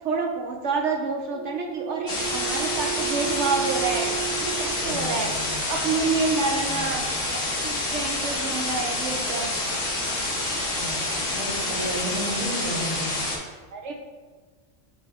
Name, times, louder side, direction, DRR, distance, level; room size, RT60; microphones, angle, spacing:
voice 1, 0.0-4.1 4.4-5.3 5.7-7.0 7.6-9.5 13.7-13.9, right 4 dB, 70° right, 2 dB, 0.9 m, -28 dB
Wind instrument woodwind instrument, 1.3-5.7, right 17 dB, 90° right, 1.4 m, -34 dB
sound 1, 2.1-13.4, left 2 dB, 80° left, 1.8 m, -28 dB
voice 2, 4.8-6.0 6.7-7.1 10.7-13.2, right 1 dB, 35° right, -8 dB, 1.9 m, -34 dB
9.5 x 3.3 x 3.5 m, 1.4 s
omnidirectional pair, 1.3 m